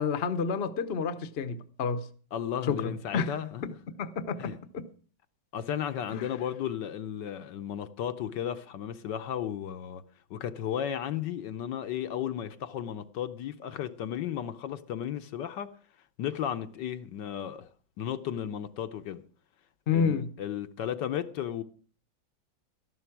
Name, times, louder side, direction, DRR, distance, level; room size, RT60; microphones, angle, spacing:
voice 1, 0.0-2.0 2.7-3.4 4.0-4.8 6.1-6.3 19.9-20.3, left 6 dB, 45° left, 0.9 m, -30 dB
voice 2, 2.3-3.7 4.4-4.6 5.5-10.0 10.3-15.7 16.2-17.7 18.0-19.2 19.9-21.6, left 9 dB, 70° left, 1.4 m, -34 dB
13.0 x 11.5 x 6.0 m
omnidirectional pair, 2.1 m